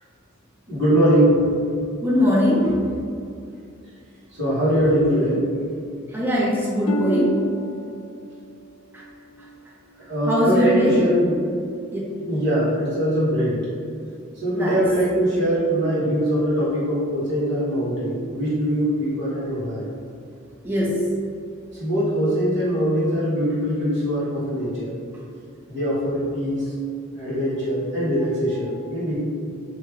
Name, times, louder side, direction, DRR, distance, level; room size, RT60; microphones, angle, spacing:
voice 1, 0.7-1.4 2.6-2.7 4.3-5.4 10.1-11.4 12.3-13.6 14.3-19.9 21.8-24.9 25.7-26.7 27.1-29.2, equal, 60° right, -10 dB, 1.5 m, -22 dB
voice 2, 2.0-2.7 6.1-7.4 8.9-9.0 10.3-11.0 11.9-12.0 14.5-14.8 20.6-21.0, left 1 dB, 10° right, -5 dB, 0.5 m, -20 dB
Harp, 6.9-10.6 11.2-11.6 12.2-12.3, right 1 dB, 85° left, 0.3 m, -33 dB
3.4 x 2.8 x 3.1 m, 2.4 s
head